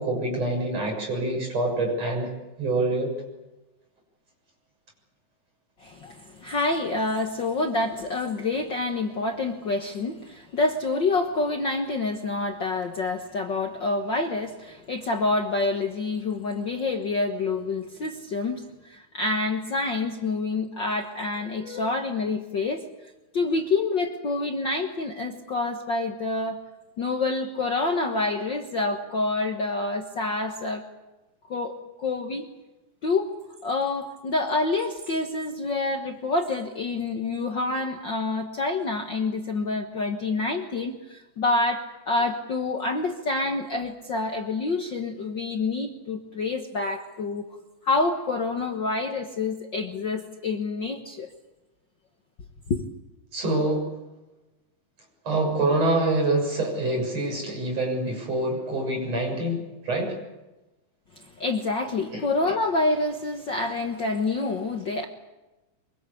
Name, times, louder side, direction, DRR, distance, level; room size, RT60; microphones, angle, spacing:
voice 1, 0.0-2.3 2.6-3.1 53.3-53.8 55.3-60.1 62.1-62.2, right 2 dB, 55° right, 1 dB, 8.1 m, -26 dB
voice 2, 5.8-22.8 23.3-26.6 27.0-30.8 31.5-32.4 33.0-33.3 33.6-47.5 47.8-51.3 52.7-52.8 61.4-65.1, left 3 dB, 45° left, 3 dB, 1.7 m, -27 dB
24.5 x 23.5 x 8.5 m, 1.1 s
omnidirectional pair, 3.6 m